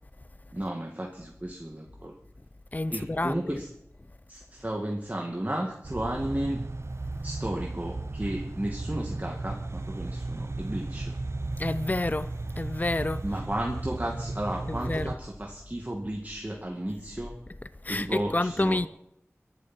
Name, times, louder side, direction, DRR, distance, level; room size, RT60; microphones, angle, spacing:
voice 1, 0.5-2.1 2.9-3.7 4.3-6.7 7.2-11.2 13.2-17.4 17.9-18.9, right 1 dB, 35° right, 2.1 m, -33 dB
voice 2, 2.7-3.4 11.6-13.2 14.7-15.1 17.8-18.9, left 2 dB, 35° left, 0.6 m, -29 dB
sound 1, 5.8-15.2, right 2 dB, 60° right, 0.7 m, -35 dB
22.5 x 11.5 x 4.5 m
wide cardioid pair, 40°, 5 cm